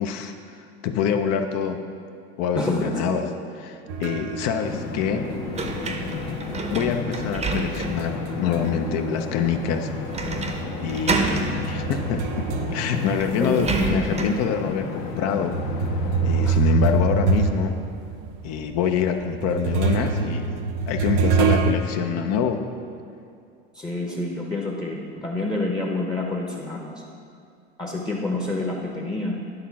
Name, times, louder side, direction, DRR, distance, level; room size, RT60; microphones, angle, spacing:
voice 1, 0.0-1.8 2.4-3.3 3.5-5.3 6.7-9.9 10.8-15.6 16.2-17.8 18.4-22.7, left 7 dB, 50° left, 6 dB, 0.6 m, -26 dB
voice 2, 2.6-3.2 13.4-14.0 16.4-16.6 23.7-26.9 27.8-29.4, left 2 dB, 10° left, -1 dB, 0.8 m, -28 dB
sound 1, 3.9-8.9 9.2-13.8 14.4-14.5 15.3-21.7, right 5 dB, 60° right, 0.7 m, -26 dB
sound 2, 4.6-16.5, left 4 dB, 70° left, 1.4 m, -33 dB
sound 3, 5.5-8.1 8.6-8.7 10.1-10.6 10.9-11.5 12.5-12.6 12.9-14.4, right 4 dB, 20° right, 0.7 m, -28 dB
10.5 x 3.7 x 5.8 m, 2.4 s
supercardioid pair, 105°, 33 cm